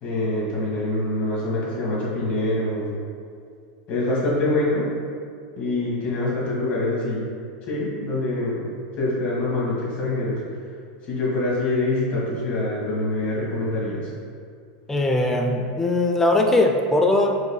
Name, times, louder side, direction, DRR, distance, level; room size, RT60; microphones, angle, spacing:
voice 1, 0.0-2.9 3.9-4.8 5.6-7.2 7.7-8.7 9.0-10.4 11.1-14.1, left 2 dB, 35° left, -5 dB, 1.4 m, -25 dB
voice 2, 14.9-17.4, left 2 dB, 10° left, 2 dB, 0.3 m, -20 dB
5.0 x 4.8 x 2.2 m, 2.2 s
supercardioid pair, 155°, 5 cm